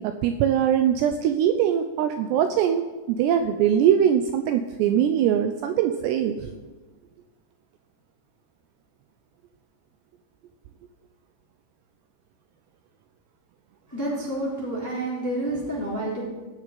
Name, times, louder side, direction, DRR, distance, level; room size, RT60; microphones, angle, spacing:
voice 1, 0.0-6.5, right 9 dB, 90° right, 7 dB, 2.4 m, -22 dB
voice 2, 13.9-16.2, right 1 dB, 5° left, -5 dB, 2.8 m, -29 dB
17.0 x 6.7 x 9.2 m, 1.3 s
omnidirectional pair, 5.7 m